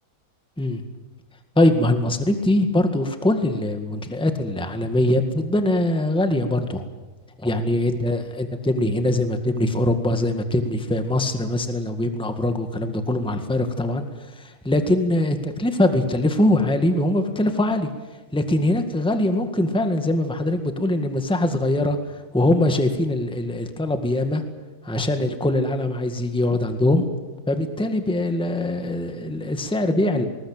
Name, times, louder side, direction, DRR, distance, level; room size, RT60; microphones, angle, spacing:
voice 1, 1.5-6.8 7.4-14.0 14.4-17.9 18.3-22.0 22.3-24.4 24.8-27.0 27.5-30.2, left 1 dB, 5° left, 7 dB, 1.6 m, -22 dB
20.5 x 20.0 x 9.0 m, 1.2 s
omnidirectional pair, 2.3 m